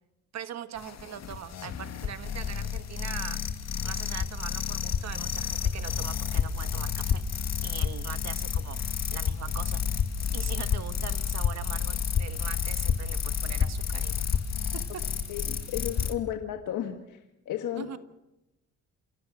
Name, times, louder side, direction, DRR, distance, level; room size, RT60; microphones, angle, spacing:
voice 1, 0.3-3.4 3.8-7.2 7.6-9.8 10.3-14.4 14.7-15.0 17.7-18.0, right 9 dB, 60° right, 11 dB, 1.5 m, -41 dB
sound 1, 0.8-16.1, left 7 dB, 60° left, 2.2 m, -30 dB
voice 2, 15.3-17.2 17.4-18.0, left 10 dB, 80° left, 6 dB, 1.7 m, -33 dB
28.0 x 17.0 x 6.3 m, 0.90 s
cardioid pair, 90°, 30 cm